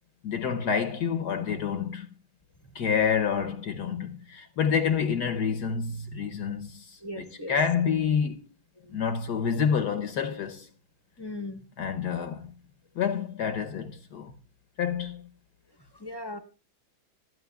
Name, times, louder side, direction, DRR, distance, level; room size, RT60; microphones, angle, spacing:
voice 1, 0.2-2.1 2.7-8.4 8.9-10.7 11.8-12.4 13.0-14.3 14.8-15.2, left 7 dB, 65° left, 1.2 m, -28 dB
voice 2, 7.0-7.6 8.8-9.0 11.2-11.6 15.9-16.4, left 1 dB, 20° left, 0.8 m, -38 dB
25.5 x 9.7 x 2.3 m
omnidirectional pair, 2.1 m